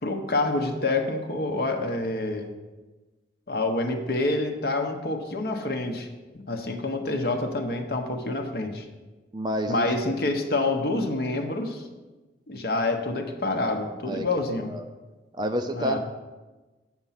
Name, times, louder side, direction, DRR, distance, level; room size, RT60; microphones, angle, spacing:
voice 1, 0.0-2.5 3.5-6.1 6.5-8.9 9.7-11.9 12.5-14.7 15.7-16.0, left 2 dB, 55° left, 5 dB, 0.9 m, -27 dB
voice 2, 9.3-9.9 14.1-14.3 14.7-14.8 15.3-16.0, equal, 25° right, 6 dB, 0.5 m, -29 dB
8.0 x 6.0 x 5.7 m, 1.2 s
head